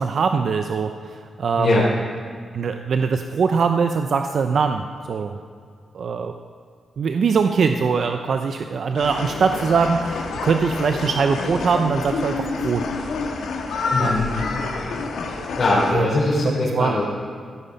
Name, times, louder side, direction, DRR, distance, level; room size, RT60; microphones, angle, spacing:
voice 1, 0.0-1.9 2.5-5.4 5.9-6.3 7.0-12.9 14.0-14.2 15.9-16.1 16.7-16.9, right 5 dB, 70° right, 6 dB, 0.6 m, -22 dB
sound 1, 9.0-15.9, left 3 dB, 85° left, 1.6 m, -28 dB
voice 2, 13.9-14.4 15.6-17.0, left 2 dB, 55° left, -5 dB, 3.6 m, -21 dB
14.0 x 10.0 x 5.3 m, 2.2 s
cardioid pair, 60°, 0 cm